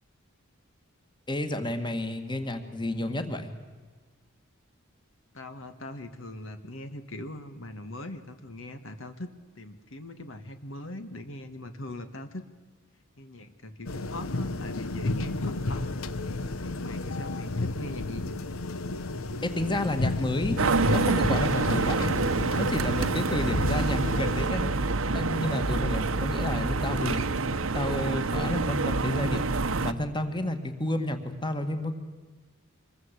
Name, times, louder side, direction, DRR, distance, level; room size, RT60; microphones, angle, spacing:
voice 1, 1.3-3.5 19.4-20.6 20.9-22.1 22.5-24.7 25.1-27.3 27.7-29.4 29.8-32.0, left 1 dB, 20° left, 8 dB, 1.9 m, -31 dB
voice 2, 5.3-9.3 9.5-12.5 13.2-16.0 16.6-18.2, left 1 dB, 70° left, 9 dB, 1.6 m, -41 dB
sound 1, 13.9-24.5, left 2 dB, 90° left, 1.0 m, -32 dB
sound 2, 20.6-29.9, right 3 dB, 80° right, 1.0 m, -27 dB
26.0 x 21.0 x 8.3 m, 1.4 s
head